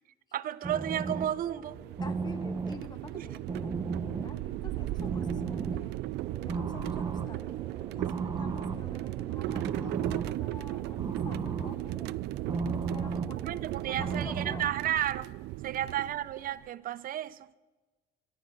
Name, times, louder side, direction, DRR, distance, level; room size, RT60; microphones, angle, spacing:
voice 1, 0.3-1.8 3.1-3.3 13.4-15.3 15.6-17.5, right 11 dB, 55° right, 0.7 m, -32 dB
sound 1, 0.6-14.6, right 4 dB, 25° right, 1.1 m, -37 dB
sound 2, 1.7-16.7, right 18 dB, 80° right, 0.4 m, -36 dB
voice 2, 2.0-3.7 4.0-6.0 6.4-12.1 12.9-14.7, left 3 dB, 25° left, 1.6 m, -48 dB
Motorcycle, 8.1-11.7, left 1 dB, 10° left, 2.2 m, -56 dB
22.5 x 12.0 x 4.8 m
cardioid pair, 110°, 17 cm